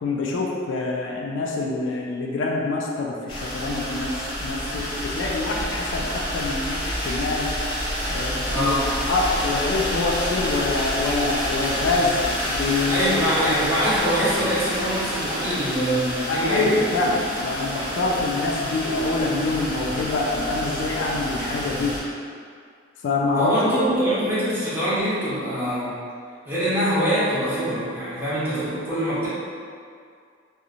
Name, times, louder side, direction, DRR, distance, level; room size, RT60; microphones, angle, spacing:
voice 1, 0.0-7.5 8.1-8.8 9.0-13.0 16.3-22.0 23.0-23.5, left 3 dB, 65° left, -1 dB, 0.3 m, -25 dB
sound 1, 3.3-22.0, equal, 25° left, 0.6 m, -28 dB
voice 2, 8.5-8.8 12.9-16.8 23.4-25.9 26.4-29.3, equal, 10° right, -12 dB, 0.8 m, -24 dB
2.9 x 2.0 x 2.5 m, 2.2 s
head